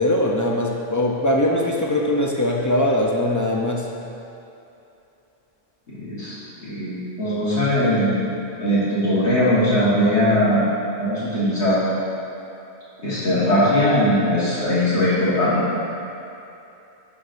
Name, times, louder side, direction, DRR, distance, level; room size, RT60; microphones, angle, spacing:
voice 1, 0.0-3.9, left 1 dB, 25° left, -1 dB, 0.4 m, -21 dB
voice 2, 5.9-6.4 6.6-8.3 8.6-10.7 11.0-11.8 13.0-15.6, left 1 dB, 85° left, -11 dB, 1.9 m, -20 dB
11.5 x 5.9 x 2.6 m, 2.8 s
omnidirectional pair, 1.1 m